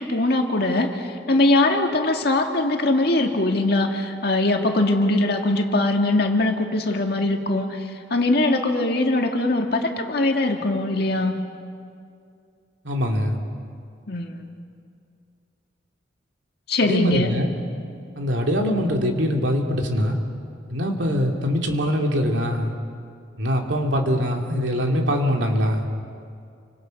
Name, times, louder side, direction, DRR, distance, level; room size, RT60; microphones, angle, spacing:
voice 1, 0.0-7.8 8.1-11.3 14.1-14.3 16.7-17.3, left 2 dB, 60° left, 3 dB, 2.1 m, -21 dB
voice 2, 12.8-13.4 16.8-17.5 18.2-20.2 20.7-22.7 23.4-25.9, equal, 85° right, 2 dB, 2.6 m, -23 dB
29.0 x 25.5 x 5.3 m, 2.3 s
head